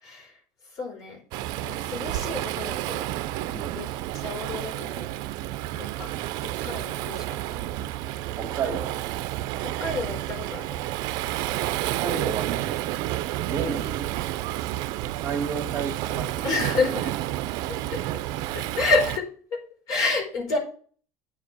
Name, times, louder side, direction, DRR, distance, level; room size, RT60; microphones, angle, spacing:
voice 1, 0.0-0.3 0.7-1.2 1.6-3.0 3.7-3.9 4.1-5.1 5.8-6.1 6.6-7.4 7.6-7.9 9.8-10.7 16.4-17.1 17.9-18.0 18.5-19.6 19.9-20.6, left 3 dB, 50° left, 1 dB, 4.5 m, -29 dB
Waves surf, 1.3-19.2, right 14 dB, 60° right, 0.6 m, -30 dB
voice 2, 8.4-9.0 12.0-12.8 13.5-14.1 15.2-16.6, right 5 dB, 30° right, 2 dB, 2.4 m, -32 dB
9.2 x 4.9 x 6.8 m, 0.43 s
cardioid pair, 135°, 8 cm